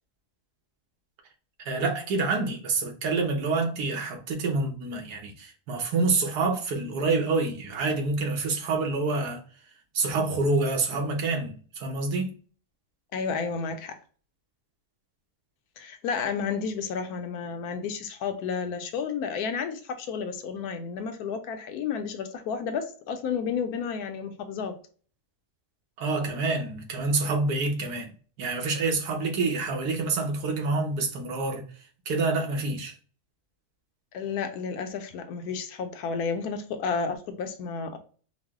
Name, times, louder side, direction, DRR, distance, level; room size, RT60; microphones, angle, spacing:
voice 1, 1.6-9.4 9.9-12.3 26.0-28.1 28.4-32.9, right 3 dB, 90° right, 1.4 m, -27 dB
voice 2, 13.1-14.0 15.8-24.7 34.1-38.0, left 6 dB, 80° left, 1.1 m, -31 dB
4.7 x 2.0 x 3.5 m
omnidirectional pair, 1.6 m